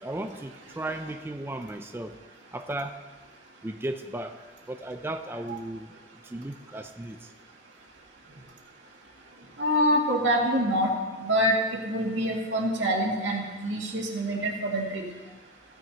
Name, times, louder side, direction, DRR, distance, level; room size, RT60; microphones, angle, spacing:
voice 1, 0.0-2.2 2.5-3.0 3.6-4.3 4.7-5.9 6.2-7.3, right 1 dB, 10° right, 6 dB, 0.4 m, -35 dB
voice 2, 9.6-10.9 11.2-15.0, equal, 85° right, -2 dB, 2.2 m, -26 dB
15.5 x 9.1 x 2.9 m, 1.3 s
head